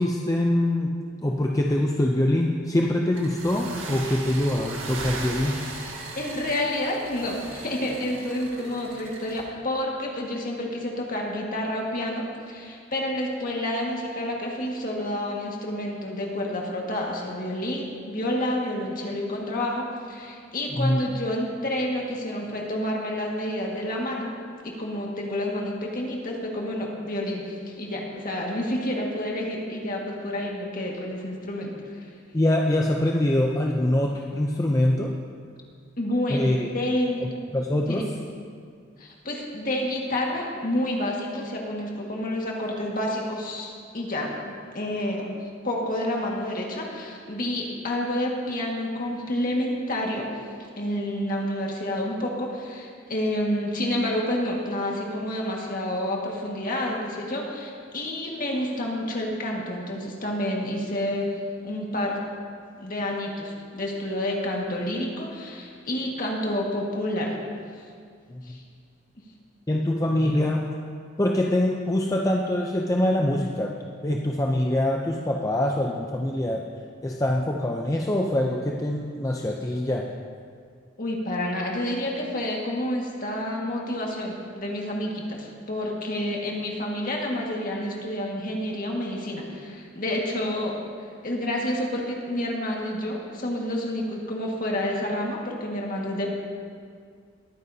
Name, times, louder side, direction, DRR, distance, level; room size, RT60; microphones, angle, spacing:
voice 1, 0.0-5.5 20.7-21.0 32.3-35.1 36.3-36.7 37.2-38.1 68.3-68.6 69.7-70.7 71.2-76.6 77.0-80.1, left 1 dB, 15° left, 0 dB, 0.5 m, -24 dB
sound 1, 3.1-9.4, right 2 dB, 85° right, 1.7 m, -37 dB
voice 2, 6.1-24.3 24.6-31.8 36.0-37.2 37.9-38.1 39.0-44.4 44.7-50.3 50.8-61.3 61.6-62.2 62.8-67.4 68.4-68.6 81.0-90.8 91.2-96.3, left 1 dB, 45° left, -1 dB, 1.8 m, -29 dB
20.5 x 9.2 x 2.8 m, 2.1 s
head